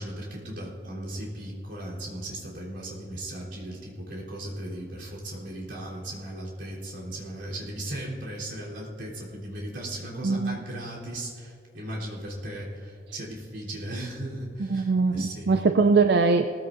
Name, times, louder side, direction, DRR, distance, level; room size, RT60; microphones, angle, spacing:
voice 1, 0.0-15.5, right 1 dB, 75° right, -6 dB, 3.5 m, -37 dB
voice 2, 10.2-10.6 14.7-16.5, right 4 dB, 55° right, 7 dB, 0.4 m, -22 dB
19.0 x 15.0 x 2.6 m, 2.6 s
head